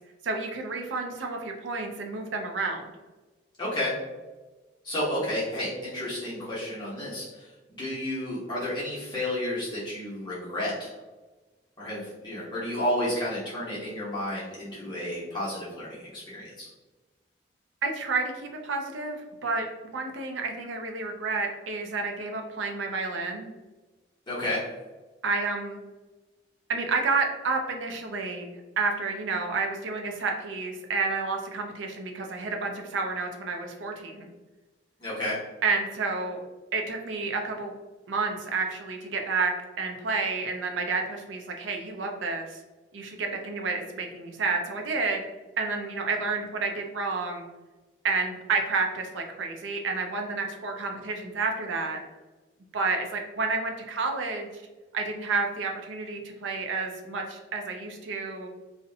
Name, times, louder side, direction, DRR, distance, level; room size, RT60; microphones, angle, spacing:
voice 1, 0.2-2.9 17.8-19.7 19.9-23.5 25.2-25.8 26.7-34.3 35.6-36.4 36.7-37.7 38.1-42.6 42.9-45.2 45.6-47.5 48.0-52.0 52.7-54.6 54.9-58.5, right 4 dB, 80° right, 3 dB, 0.4 m, -30 dB
voice 2, 3.6-3.9 4.8-7.5 7.8-10.9 11.8-16.7 24.3-24.6 35.0-35.4, left 1 dB, 25° left, -9 dB, 0.7 m, -31 dB
2.6 x 2.1 x 2.6 m, 1.2 s
head